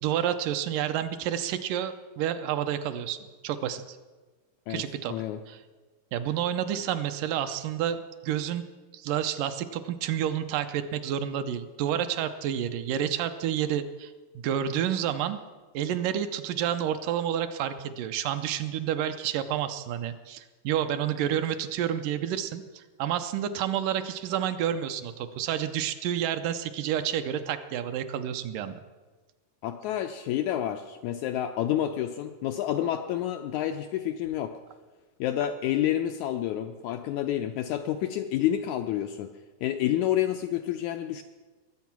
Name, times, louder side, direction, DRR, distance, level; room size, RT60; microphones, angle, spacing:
voice 1, 0.0-4.0 4.7-5.1 5.5-5.6 6.1-8.7 8.9-15.4 15.7-28.8, right 10 dB, 80° right, 9 dB, 2.2 m, -29 dB
voice 2, 5.1-5.4 29.6-34.5 35.2-39.3 39.6-41.2, left 11 dB, 90° left, 7 dB, 1.7 m, -29 dB
20.5 x 8.2 x 5.9 m, 1.3 s
omnidirectional pair, 4.0 m